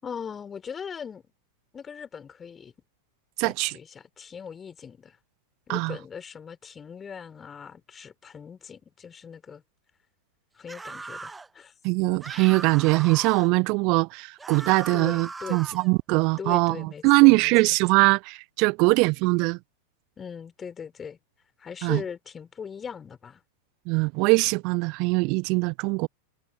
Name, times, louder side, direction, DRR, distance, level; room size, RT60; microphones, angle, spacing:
voice 1, 0.0-1.3 1.7-2.7 3.4-5.2 5.7-9.6 10.6-11.7 14.9-15.6 16.4-17.5 20.2-21.2 21.6-23.4, left 7 dB, 20° left, 4.7 m, -39 dB
voice 2, 3.4-3.8 5.7-6.0 11.8-19.6 21.8-22.0 23.9-26.1, right 29 dB, 45° right, 0.6 m, -22 dB
sound 1, 10.7-11.5 12.2-13.5 14.4-15.9, right 3 dB, 10° right, 1.1 m, -39 dB
figure-of-eight pair, 90°, 0 cm